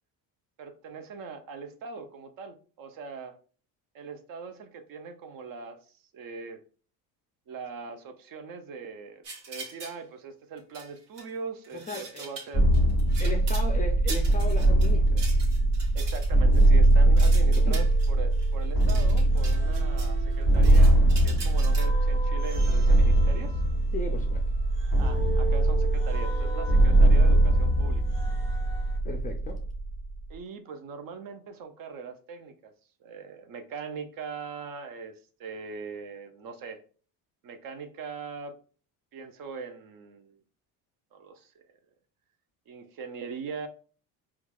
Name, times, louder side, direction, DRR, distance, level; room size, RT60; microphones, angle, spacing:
voice 1, 0.6-3.4 3.9-5.8 6.1-6.6 7.5-12.6 13.2-13.4 15.9-21.0 21.2-23.6 25.0-28.0 30.3-32.7 33.0-36.8 37.4-38.5 39.1-40.4 41.1-41.6 42.7-43.7, right 5 dB, 50° right, 8 dB, 0.6 m, -41 dB
sound 1, 9.2-10.0 10.6-11.3 11.6-13.7 14.1-20.1 20.4-21.9, right 4 dB, 70° right, 1.3 m, -42 dB
voice 2, 11.9-12.2 13.2-15.3 17.1-17.2 17.6-17.8 23.9-24.4 29.0-29.6, left 3 dB, 20° left, 3 dB, 0.3 m, -36 dB
sound 2, 12.5-30.2, right 1 dB, 5° right, 1.2 m, -22 dB
sound 3, 17.5-19.0 19.3-29.0, right 4 dB, 25° right, 0.9 m, -42 dB
4.4 x 2.4 x 2.2 m, 0.40 s
supercardioid pair, 95°, 45 cm